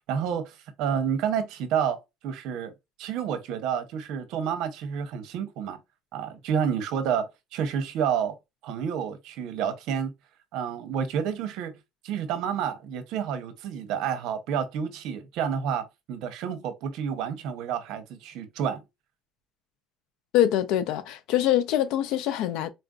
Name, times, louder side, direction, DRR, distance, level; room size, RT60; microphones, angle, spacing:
voice 1, 0.1-2.7 3.0-5.8 6.1-8.3 8.6-10.1 10.5-11.8 12.0-18.8, right 8 dB, 80° right, 0.8 m, -29 dB
voice 2, 20.3-22.7, left 12 dB, 80° left, 0.5 m, -24 dB
4.1 x 2.5 x 2.3 m
cardioid pair, 125°, 0 cm